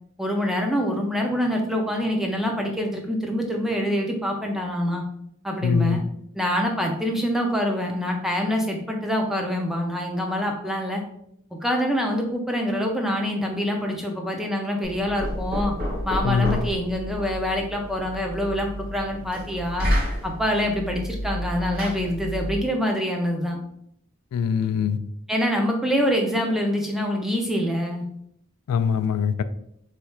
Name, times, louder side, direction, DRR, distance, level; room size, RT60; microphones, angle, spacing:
voice 1, 0.2-5.0 5.4-6.0 6.4-11.0 11.6-15.7 16.0-19.9 20.2-23.6 25.3-28.0, equal, ahead, 1 dB, 0.4 m, -25 dB
voice 2, 5.6-6.0 16.2-16.6 24.3-25.0 28.7-29.4, left 6 dB, 85° left, 14 dB, 0.3 m, -23 dB
Knock, 14.8-22.7, equal, 40° right, 1.2 m, -30 dB
3.2 x 2.3 x 4.2 m, 0.73 s
head